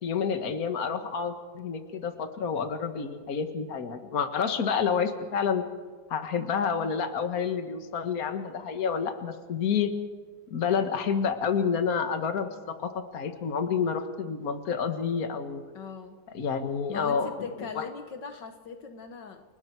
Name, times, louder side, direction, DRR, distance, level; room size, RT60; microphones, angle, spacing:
voice 1, 0.0-5.6 6.1-9.9 10.5-15.6 16.3-17.3 17.8-17.9, left 6 dB, 50° left, 7 dB, 1.9 m, -29 dB
voice 2, 15.7-16.2 16.9-19.4, left 5 dB, 70° left, 6 dB, 1.9 m, -40 dB
30.0 x 18.5 x 4.7 m, 1.5 s
omnidirectional pair, 2.1 m